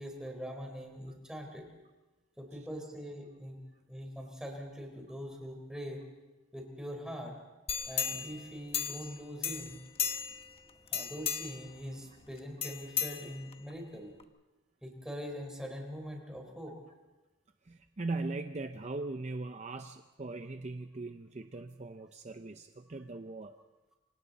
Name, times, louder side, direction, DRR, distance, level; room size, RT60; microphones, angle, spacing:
voice 1, 0.0-1.7 2.4-3.6 3.9-6.0 6.5-7.3 7.9-9.8 10.9-14.1 14.8-16.8, equal, 5° right, 2 dB, 4.0 m, -43 dB
sound 1, 7.7-9.2 9.4-10.5 10.9-11.7 12.6-13.7 14.2-14.3, left 8 dB, 30° left, 1.0 m, -35 dB
voice 2, 17.6-23.6, right 3 dB, 35° right, 7 dB, 0.7 m, -40 dB
28.0 x 25.5 x 4.1 m, 1.1 s
head